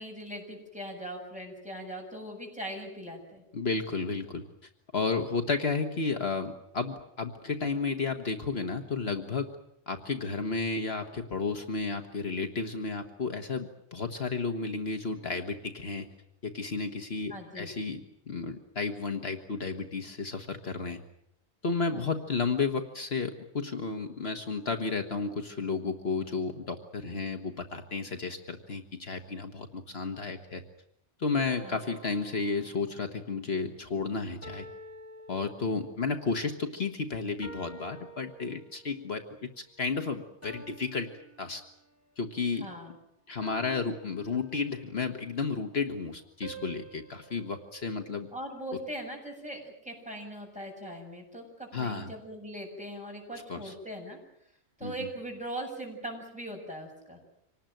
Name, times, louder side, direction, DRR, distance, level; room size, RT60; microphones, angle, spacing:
voice 1, 0.0-3.4 17.3-17.7 21.9-22.1 31.6-31.8 42.6-42.9 48.3-54.2 54.8-57.2, right 1 dB, 5° right, 0 dB, 7.6 m, -40 dB
voice 2, 3.5-4.5 4.9-9.5 9.9-16.1 16.4-18.0 18.3-21.0 21.6-30.6 31.2-34.7 35.3-41.1 41.4-41.6 42.2-42.7 43.3-48.3 51.7-52.1 53.5-53.7 54.8-55.1, left 4 dB, 60° left, 6 dB, 1.7 m, -32 dB
sound 1, 31.4-33.4 34.4-36.1 37.4-39.0 40.4-42.1 43.4-45.0 46.4-48.8, right 2 dB, 10° left, 4.4 m, -49 dB
26.0 x 19.0 x 9.1 m, 0.75 s
omnidirectional pair, 1.2 m